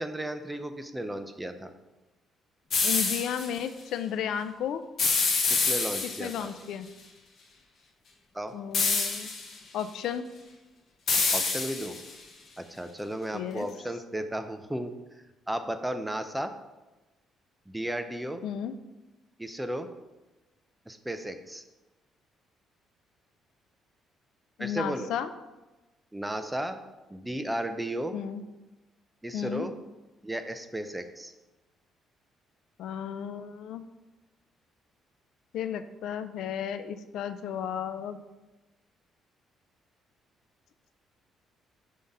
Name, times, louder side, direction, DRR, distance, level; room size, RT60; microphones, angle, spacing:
voice 1, 0.0-1.7 5.5-6.5 8.3-8.5 11.3-12.0 12.6-14.9 15.5-16.5 17.7-18.4 19.4-19.9 20.9-21.6 24.6-25.1 26.1-26.8 27.1-28.1 29.2-29.7 30.2-31.3, right 1 dB, 5° right, 8 dB, 0.4 m, -34 dB
sound 1, 2.7-3.5 5.0-6.4 8.7-9.5 11.1-12.1, left 4 dB, 45° left, 1.0 m, -26 dB
voice 2, 2.8-4.8 6.0-6.9 8.5-9.3 9.7-10.3 13.3-13.7 18.4-18.7 24.6-25.3 28.1-28.4 29.3-29.7 32.8-33.9 35.5-38.2, left 9 dB, 75° left, 11 dB, 0.4 m, -33 dB
5.5 x 3.6 x 5.3 m, 1.1 s
cardioid pair, 140°, 0 cm